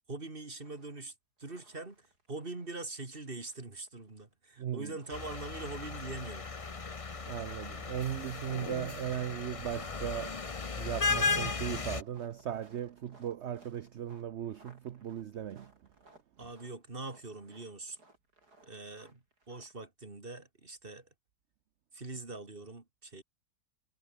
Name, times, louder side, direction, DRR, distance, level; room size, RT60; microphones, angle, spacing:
voice 1, 0.1-1.1 1.4-6.5 16.4-18.0 18.6-21.1 21.9-23.2, right 3 dB, 35° right, 3.0 m, -43 dB
sound 1, 0.6-1.1 1.4-2.9 3.1-4.3 4.9-19.7, right 2 dB, 75° right, 7.4 m, -63 dB
voice 2, 4.6-4.9 7.2-10.4 10.8-15.7, right 10 dB, 55° right, 0.9 m, -37 dB
sound 2, 5.1-12.0, left 4 dB, 25° left, 0.8 m, -35 dB
omnidirectional pair, 1.7 m